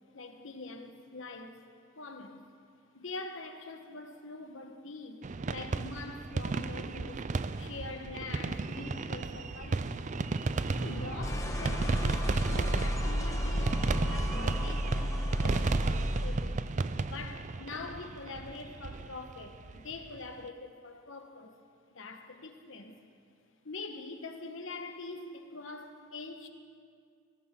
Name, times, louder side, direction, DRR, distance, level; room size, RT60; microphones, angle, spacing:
voice 1, 0.1-1.6 2.0-2.4 2.9-7.3 7.6-10.1 10.8-16.6 17.0-21.6 21.9-23.0 23.6-26.5, left 3 dB, 65° left, 5 dB, 1.3 m, -44 dB
sound 1, 5.2-20.2, right 3 dB, 35° right, 0.4 m, -34 dB
sound 2, 8.6-16.5, equal, 15° left, 1.1 m, -33 dB
22.0 x 17.5 x 3.8 m, 2.2 s
head